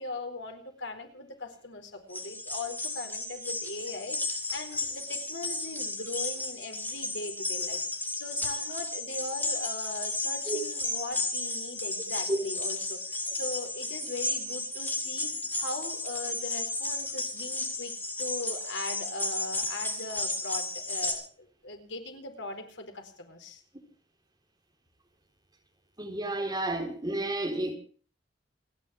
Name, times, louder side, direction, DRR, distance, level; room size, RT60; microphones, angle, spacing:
voice 1, 0.0-7.8 8.1-15.3 15.6-17.9 18.2-23.6, left 2 dB, 80° left, 4.4 m, -39 dB
sound 1, 2.1-21.1, left 2 dB, 10° left, 3.9 m, -33 dB
voice 2, 26.0-27.7, right 1 dB, 20° right, 4.2 m, -31 dB
29.0 x 11.0 x 3.6 m
head